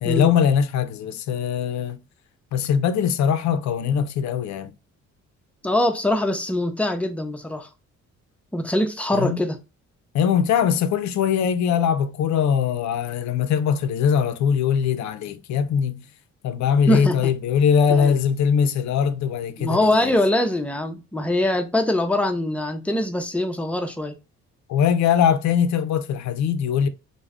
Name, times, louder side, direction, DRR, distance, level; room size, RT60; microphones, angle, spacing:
voice 1, 0.0-2.0 2.5-4.7 9.1-9.4 10.1-16.0 16.4-20.1 24.7-26.9, left 7 dB, 70° left, 0.4 m, -21 dB
voice 2, 5.6-7.7 8.5-9.6 16.9-17.3 17.9-18.1 19.6-24.2, left 1 dB, 5° left, 0.4 m, -23 dB
2.3 x 2.1 x 3.4 m
cardioid pair, 90°, 30 cm